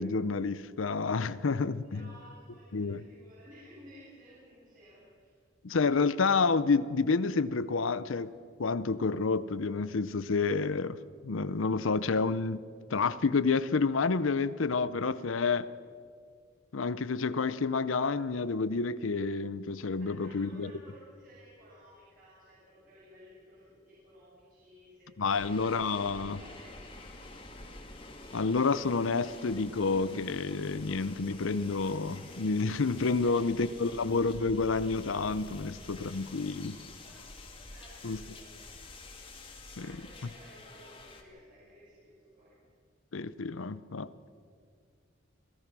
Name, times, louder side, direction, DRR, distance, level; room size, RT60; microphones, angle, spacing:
voice 1, 0.0-2.1 2.7-3.0 5.6-8.3 8.6-11.0 11.2-15.7 16.7-20.7 25.2-26.4 28.3-36.8 38.0-38.2 39.8-39.9 43.1-44.1, left 4 dB, 80° left, 0.7 m, -29 dB
voice 2, 1.8-5.4 20.0-26.9 27.1-27.5 33.2-33.9 35.6-36.1 37.0-37.3 37.7-38.9 39.8-42.7, equal, 45° right, 6.6 m, -56 dB
sound 1, 25.3-41.2, left 2 dB, 25° left, 2.2 m, -48 dB
26.5 x 17.0 x 6.1 m
head